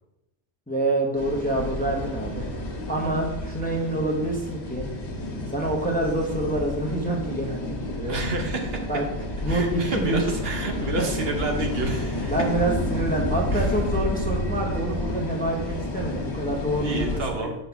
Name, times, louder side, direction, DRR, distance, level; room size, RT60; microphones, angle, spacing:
voice 1, 0.7-2.5 2.9-4.9 5.5-8.2 8.9-9.0 9.4-10.2 12.3-17.5, right 1 dB, 10° left, 0 dB, 0.8 m, -27 dB
sound 1, 1.2-17.2, left 1 dB, 65° left, 1.3 m, -30 dB
voice 2, 8.1-8.9 9.5-12.3 13.5-13.7 16.7-17.5, right 2 dB, 60° right, 2 dB, 1.1 m, -29 dB
5.3 x 3.9 x 5.8 m, 0.91 s
omnidirectional pair, 1.2 m